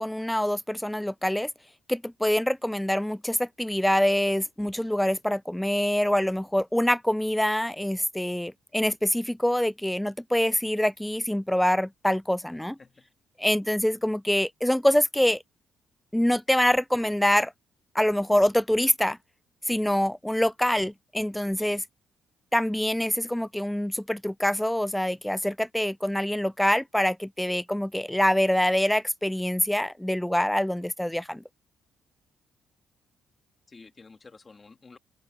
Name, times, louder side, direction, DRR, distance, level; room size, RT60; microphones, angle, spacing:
voice 1, 0.0-1.5 1.9-12.8 13.4-15.4 16.1-17.5 17.9-19.2 19.7-21.8 22.5-31.4, left 1 dB, 5° left, 0.4 m, -25 dB
voice 2, 12.5-13.1 21.6-21.8 33.7-35.0, left 4 dB, 30° left, 3.0 m, -51 dB
cardioid pair, 90°, 0 cm